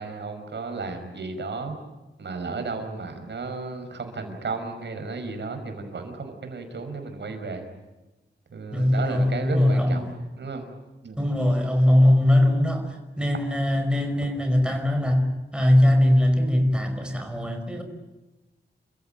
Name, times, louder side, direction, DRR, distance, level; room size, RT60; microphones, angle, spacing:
voice 1, 0.0-1.8 2.2-7.6 8.5-10.0 10.4-10.7 11.0-11.2, right 4 dB, 70° right, 6 dB, 5.5 m, -33 dB
voice 2, 8.7-10.1 11.2-15.3 15.5-17.8, left 1 dB, 5° right, 5 dB, 5.3 m, -21 dB
29.5 x 16.0 x 9.2 m, 1.1 s
wide cardioid pair, 85°, 19 cm